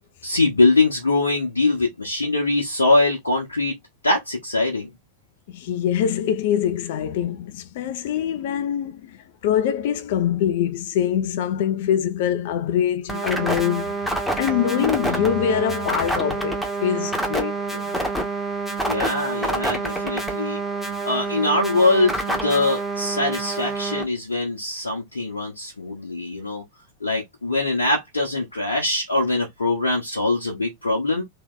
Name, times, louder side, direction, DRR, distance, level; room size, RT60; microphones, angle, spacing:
voice 1, 0.2-3.7 4.0-4.9 18.8-20.6 21.0-26.6 27.0-31.2, left 2 dB, 75° left, 1.3 m, -22 dB
voice 2, 5.5-13.9 14.4-18.0, left 9 dB, 50° left, 0.7 m, -24 dB
sound 1, 13.1-24.0, right 2 dB, ahead, 1.4 m, -27 dB
3.4 x 3.4 x 3.8 m
figure-of-eight pair, 90°, 0 cm